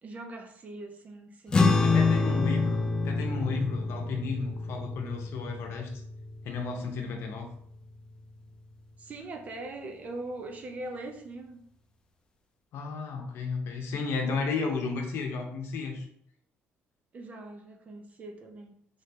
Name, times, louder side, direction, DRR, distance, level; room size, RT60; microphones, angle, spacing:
voice 1, 0.0-2.7 9.0-11.6 17.1-18.7, right 2 dB, 35° right, 4 dB, 0.6 m, -42 dB
sound 1, 1.5-8.2, left 3 dB, 20° left, 0.4 m, -28 dB
voice 2, 1.8-5.9 6.4-7.5 12.7-16.0, left 4 dB, 65° left, 3 dB, 0.8 m, -33 dB
3.7 x 3.3 x 2.7 m, 0.67 s
cardioid pair, 145°, 5 cm